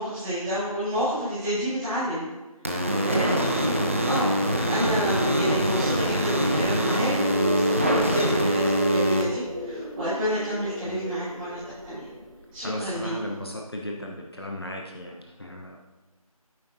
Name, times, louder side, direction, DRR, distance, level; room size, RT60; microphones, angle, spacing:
voice 1, 0.0-2.2 2.6-3.6 4.0-4.3 4.7-11.6 11.8-12.0 12.5-13.2, equal, 5° right, -15 dB, 2.0 m, -30 dB
sound 1, 2.6-9.2, equal, 20° right, 0.7 m, -24 dB
voice 2, 3.4-4.0 10.8-11.0 12.6-15.8, left 1 dB, 40° left, 0 dB, 1.0 m, -35 dB
sound 2, 5.0-13.1, right 2 dB, 40° right, 1.2 m, -33 dB
12.5 x 9.5 x 2.8 m, 1.2 s
figure-of-eight pair, 170°, 19 cm